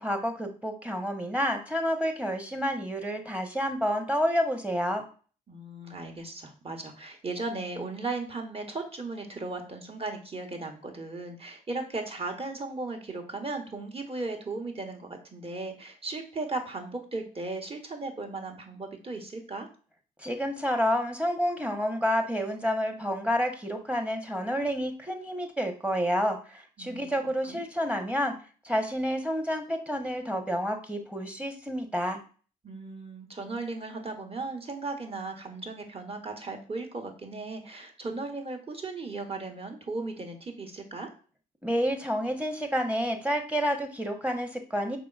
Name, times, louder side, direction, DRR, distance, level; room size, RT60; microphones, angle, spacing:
voice 1, 0.0-5.0 20.2-28.3 28.6-32.2 41.6-45.0, equal, 5° right, 5 dB, 1.0 m, -29 dB
voice 2, 5.5-19.7 26.8-27.1 27.5-27.6 32.6-41.1, right 3 dB, 30° right, 4 dB, 1.2 m, -36 dB
4.9 x 3.8 x 2.4 m, 0.39 s
hypercardioid pair, 50°, 20 cm